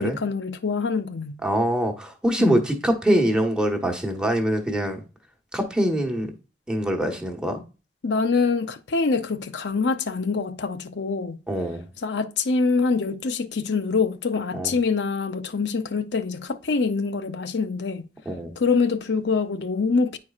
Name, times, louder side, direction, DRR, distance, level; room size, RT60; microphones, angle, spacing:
voice 1, 0.0-1.4 2.4-2.6 8.0-11.4 12.0-18.0 18.6-20.2, left 4 dB, 80° left, 0.6 m, -25 dB
voice 2, 1.4-5.0 5.5-6.3 6.7-7.6 11.5-11.8 14.5-14.7 18.2-18.5, equal, 5° right, 1.2 m, -24 dB
9.6 x 4.6 x 2.4 m
head